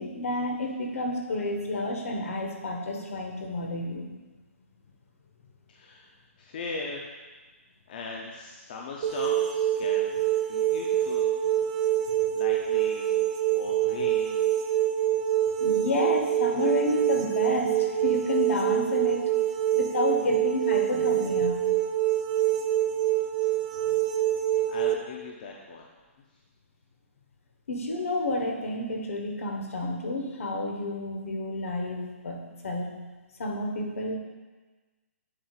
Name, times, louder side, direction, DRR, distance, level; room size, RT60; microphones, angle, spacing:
voice 1, 0.0-4.1 12.2-12.3 15.6-19.3 19.7-21.6 23.9-24.0 27.7-32.9 33.4-34.2, left 1 dB, 70° left, 2 dB, 1.2 m, -30 dB
voice 2, 5.7-6.1 6.4-7.1 7.9-10.2 10.5-11.3 11.8-11.9 12.3-14.4 24.7-25.9, left 4 dB, 35° left, -1 dB, 0.6 m, -39 dB
sound 1, 9.0-24.9, right 11 dB, 25° right, 0.4 m, -25 dB
7.2 x 6.6 x 2.4 m, 1.3 s
hypercardioid pair, 170°, 8 cm